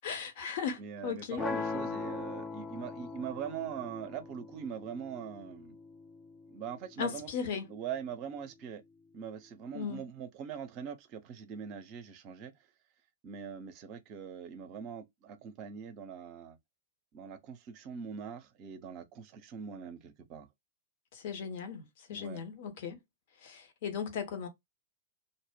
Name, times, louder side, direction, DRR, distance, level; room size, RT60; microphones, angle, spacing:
voice 1, 0.0-1.4 7.0-7.7 9.7-10.1 21.1-23.0 23.4-24.5, left 6 dB, 55° left, 0.8 m, -37 dB
voice 2, 0.8-5.8 6.5-7.3 7.7-8.8 9.1-12.5 13.2-16.6 17.1-20.5 22.1-22.4, right 7 dB, 40° right, 0.5 m, -42 dB
sound 1, 1.4-7.4, left 4 dB, 20° left, 0.4 m, -40 dB
2.1 x 2.0 x 3.3 m
figure-of-eight pair, 100°, 0 cm